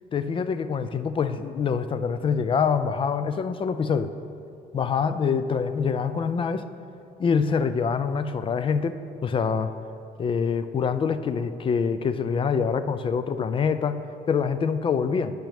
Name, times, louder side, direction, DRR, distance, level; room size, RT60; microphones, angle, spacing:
voice 1, 0.1-4.1 4.7-6.7 7.2-9.7 10.2-14.0 14.3-15.3, left 6 dB, 30° left, 12 dB, 0.3 m, -25 dB
9.0 x 8.8 x 3.5 m, 2.6 s
cardioid pair, 110°, 17 cm